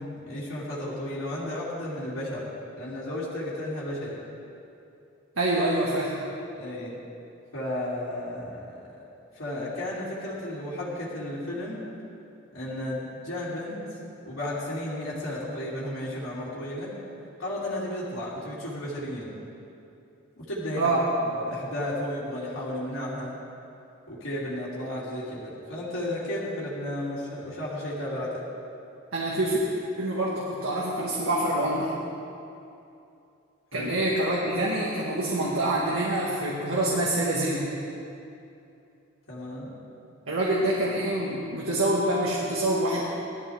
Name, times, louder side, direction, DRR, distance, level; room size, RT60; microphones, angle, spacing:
voice 1, 0.0-2.5 2.8-4.2 6.6-7.0 7.5-8.8 9.3-11.8 12.5-14.0 14.2-16.9 17.4-19.3 20.4-23.4 24.1-28.4 33.7-33.9 39.3-39.7, left 1 dB, 80° left, -11 dB, 3.1 m, -33 dB
voice 2, 5.4-6.1 20.8-21.0 29.1-29.6 30.0-31.9 33.7-37.7 40.3-43.0, right 1 dB, 85° right, -5 dB, 1.8 m, -26 dB
17.5 x 13.5 x 3.6 m, 2.7 s
head